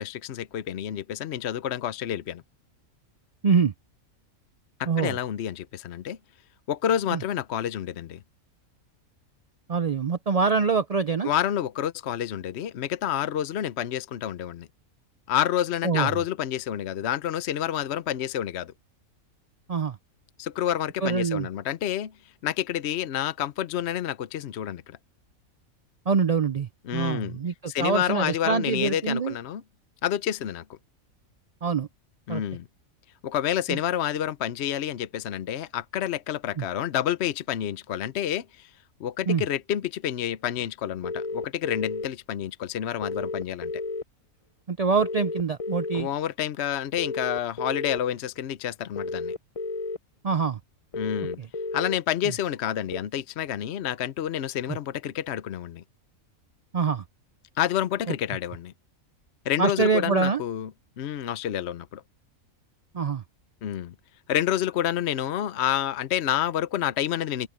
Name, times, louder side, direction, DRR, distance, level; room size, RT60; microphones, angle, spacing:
voice 1, 0.0-2.4 4.8-6.2 6.7-8.2 11.2-14.7 15.3-18.7 20.4-22.1 22.4-25.0 26.9-27.4 27.7-29.6 30.0-30.8 32.3-32.7 33.2-38.7 39.0-43.7 45.9-49.3 51.0-51.4 51.7-55.8 57.6-58.7 59.4-60.7 61.0-62.0 63.6-63.9 64.3-67.5, left 10 dB, 60° left, 0.8 m, -29 dB
voice 2, 3.4-3.7 4.9-5.2 7.1-7.2 9.7-11.3 15.8-16.1 19.7-20.0 21.0-21.5 26.1-29.4 31.6-31.9 32.3-32.4 33.7-33.8 36.6-36.7 39.3-39.4 44.7-46.1 50.2-50.6 51.4-51.5 56.7-57.0 58.1-58.2 59.6-60.4 62.9-63.2, right 5 dB, 85° right, 0.3 m, -25 dB
sound 1, 41.0-42.1 43.0-44.0 45.0-46.0 47.0-48.0 49.0-50.0 50.9-52.0 52.9-53.0, left 3 dB, 30° left, 0.7 m, -32 dB
omnidirectional pair, 1.5 m